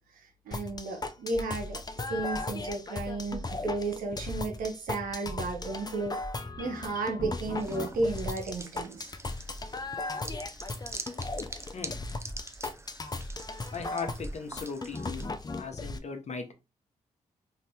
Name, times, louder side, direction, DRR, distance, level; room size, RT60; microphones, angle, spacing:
sound 1, 0.5-16.0, left 3 dB, 30° left, 0.5 m, -37 dB
voice 1, 0.5-1.8 2.1-6.2 6.6-9.1, right 2 dB, 80° right, 0.8 m, -33 dB
sound 2, 1.3-4.0 4.2-11.8 12.2-15.7, right 1 dB, ahead, 0.9 m, -46 dB
sound 3, 7.5-15.5, right 2 dB, 20° right, 0.5 m, -45 dB
voice 2, 13.7-15.2 15.6-16.5, left 5 dB, 50° left, 0.9 m, -38 dB
2.7 x 2.5 x 3.4 m
supercardioid pair, 40°, 15 cm